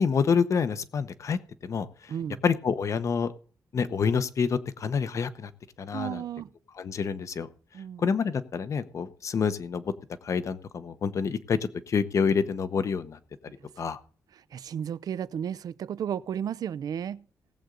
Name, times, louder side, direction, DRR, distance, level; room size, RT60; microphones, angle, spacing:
voice 1, 0.0-2.1 2.4-3.3 3.7-5.5 5.8-6.2 6.8-7.5 8.0-9.8 10.2-11.6 11.9-13.2 13.8-14.0, left 6 dB, 50° left, 0.9 m, -27 dB
voice 2, 2.1-2.4 5.9-6.5 7.7-8.0 14.4-17.2, right 9 dB, 70° right, 0.5 m, -33 dB
18.0 x 7.9 x 3.8 m
wide cardioid pair, 160°, 7 cm